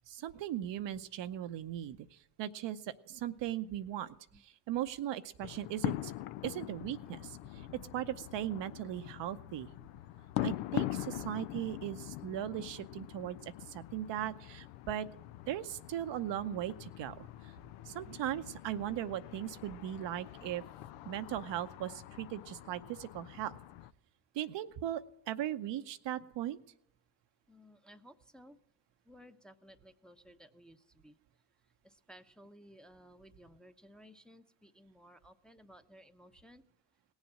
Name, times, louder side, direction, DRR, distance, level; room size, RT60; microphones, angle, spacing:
voice 1, 0.1-4.1 4.4-6.1 6.4-7.7 7.9-9.7 10.4-15.1 15.5-17.5 17.9-20.6 21.0-23.6 24.3-26.6, right 11 dB, 60° right, 10 dB, 0.8 m, -38 dB
sound 1, 5.4-23.9, left 15 dB, 75° left, 0.6 m, -43 dB
voice 2, 27.5-28.6 29.1-31.2 31.8-36.6, equal, ahead, 7 dB, 0.8 m, -58 dB
18.0 x 7.2 x 7.7 m, 0.76 s
hypercardioid pair, 50°, 49 cm